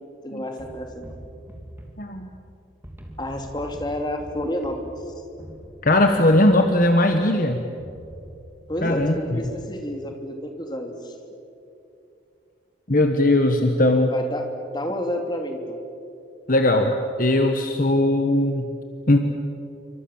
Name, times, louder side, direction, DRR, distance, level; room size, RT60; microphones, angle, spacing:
voice 1, 0.2-1.1 3.2-4.9 8.7-11.1 14.1-14.4 14.7-15.8, left 1 dB, 20° left, 4 dB, 2.8 m, -30 dB
sound 1, 0.6-2.5 2.8-7.3 7.8-9.7, right 1 dB, 10° right, 3.0 m, -43 dB
voice 2, 2.0-2.3 5.8-7.6 8.8-9.4 12.9-14.1 16.5-18.7 19.1-19.2, left 1 dB, 45° left, 5 dB, 1.3 m, -19 dB
28.0 x 25.5 x 7.3 m, 2.7 s
head